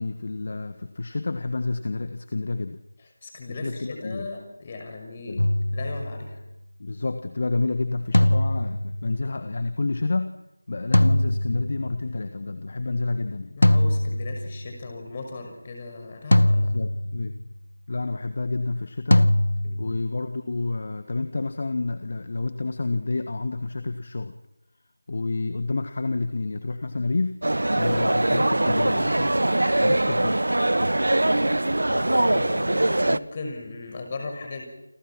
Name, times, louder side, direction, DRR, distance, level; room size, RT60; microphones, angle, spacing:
voice 1, 0.0-2.8 3.5-4.3 5.3-5.5 6.8-10.3 10.7-13.6 16.6-17.4 17.9-19.3 19.8-24.4 25.1-27.4 27.7-29.3 29.8-30.4, left 3 dB, 40° left, 10 dB, 1.5 m, -29 dB
voice 2, 3.2-5.4 5.7-6.4 13.5-16.7 19.6-19.9 31.9-34.6, left 3 dB, 25° left, 3 dB, 6.2 m, -37 dB
sound 1, 5.4-6.4 8.1-9.3 10.9-12.1 13.6-14.8 16.3-17.5 19.1-20.0, left 1 dB, 70° left, 1.6 m, -22 dB
sound 2, 27.4-33.2, right 1 dB, 65° right, 1.0 m, -22 dB
29.0 x 26.5 x 6.1 m, 0.87 s
figure-of-eight pair, 170°, 0 cm